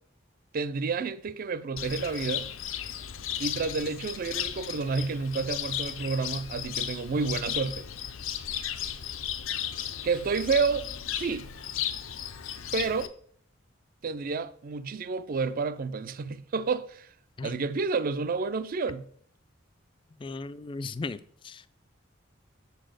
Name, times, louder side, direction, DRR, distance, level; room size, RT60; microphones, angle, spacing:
voice 1, 0.5-2.5 3.4-7.8 10.0-11.5 12.7-13.1 14.0-17.1 17.4-19.1, right 4 dB, 45° right, 0.4 m, -30 dB
Cricket, 1.8-13.1, left 10 dB, 85° left, 0.6 m, -35 dB
voice 2, 20.2-21.7, left 3 dB, 25° left, 0.3 m, -37 dB
7.2 x 4.1 x 6.4 m
head